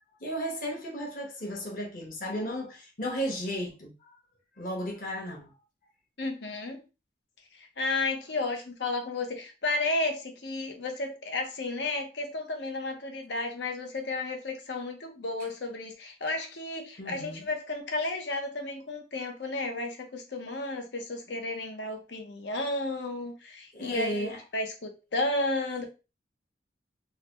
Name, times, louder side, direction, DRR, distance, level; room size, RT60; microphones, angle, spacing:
voice 1, 0.2-4.2 4.6-5.5 17.0-17.5 21.3-21.4 23.7-24.4, equal, 45° left, 1.1 m, -34 dB
voice 2, 6.2-6.8 7.6-25.8, left 2 dB, 75° left, 0.8 m, -33 dB
3.8 x 2.1 x 2.9 m
head